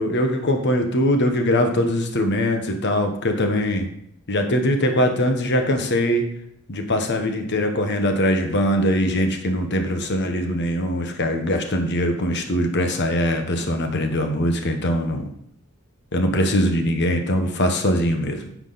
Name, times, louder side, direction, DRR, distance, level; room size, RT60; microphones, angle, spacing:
voice 1, 0.0-3.9 4.3-6.2 6.7-15.3 16.1-18.4, equal, 55° left, 5 dB, 1.2 m, -22 dB
9.6 x 7.2 x 4.1 m, 0.70 s
head